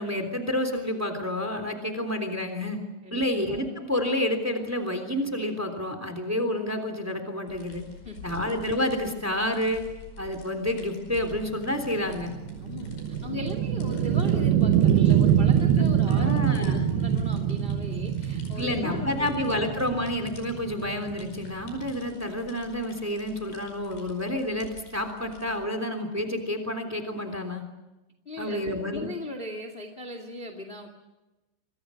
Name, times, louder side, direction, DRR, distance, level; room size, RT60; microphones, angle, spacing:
voice 1, 0.0-2.8 3.1-7.8 8.2-9.8 10.2-12.3 16.0-16.9 18.6-27.6 28.4-29.1, left 1 dB, 5° right, 7 dB, 2.3 m, -29 dB
voice 2, 3.0-3.6 8.0-8.3 12.6-12.9 13.2-19.6 28.2-30.9, left 2 dB, 25° left, 6 dB, 1.2 m, -38 dB
sound 1, 7.5-25.6, left 2 dB, 65° left, 7.1 m, -47 dB
sound 2, 11.4-22.1, right 9 dB, 70° right, 2.9 m, -24 dB
28.0 x 23.5 x 6.5 m, 1.0 s
omnidirectional pair, 5.0 m